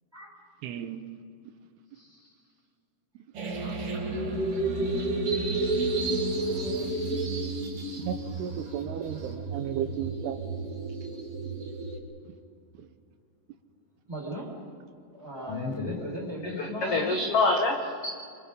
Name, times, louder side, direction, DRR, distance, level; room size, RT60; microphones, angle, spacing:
voice 1, 0.6-1.0 8.0-10.4, right 9 dB, 80° right, 8 dB, 2.9 m, -34 dB
voice 2, 1.9-2.3 6.4-6.9 9.5-9.7 14.1-14.5 15.1-17.2, equal, 5° right, -3 dB, 5.3 m, -38 dB
sound 1, 3.3-12.0, right 2 dB, 40° right, 2.9 m, -31 dB
voice 3, 5.9-6.9 15.5-15.9 16.5-18.1, left 3 dB, 65° left, 2 dB, 1.5 m, -28 dB
26.0 x 25.0 x 5.4 m, 2.3 s
omnidirectional pair, 4.7 m